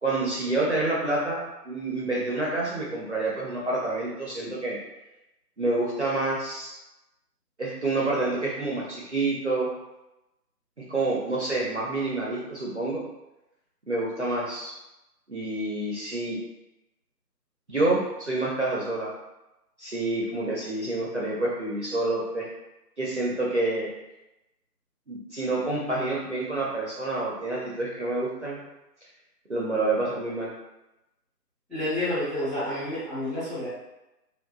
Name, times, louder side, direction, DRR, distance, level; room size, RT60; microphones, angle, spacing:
voice 1, 0.0-4.8 5.6-6.8 7.6-9.7 10.8-13.0 13.9-14.8 15.3-16.4 17.7-19.1 19.8-22.5 23.0-23.9 25.1-28.6 29.5-30.5, right 2 dB, 50° right, -5 dB, 0.5 m, -28 dB
voice 2, 31.7-33.7, left 1 dB, ahead, -11 dB, 0.5 m, -29 dB
2.7 x 2.1 x 2.3 m, 0.95 s
figure-of-eight pair, 155°, 49 cm